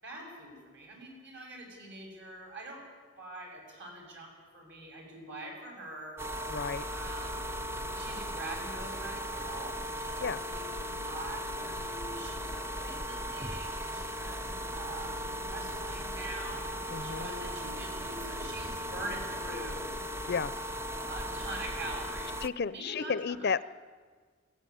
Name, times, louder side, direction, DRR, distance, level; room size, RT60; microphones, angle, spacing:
voice 1, 0.0-2.8 3.2-6.2 6.9-7.4 7.9-14.5 14.7-15.2 15.5-16.6 17.0-19.9 21.0-22.4 22.6-23.5, right 1 dB, 60° right, 1 dB, 7.4 m, -44 dB
sound 1, 6.2-22.5, equal, 15° right, 0.6 m, -37 dB
voice 2, 6.5-6.8 10.2-10.4 16.9-17.3 20.3-20.5 22.4-23.6, left 5 dB, 55° left, 17 dB, 0.6 m, -32 dB
21.5 x 17.5 x 10.0 m, 1.6 s
head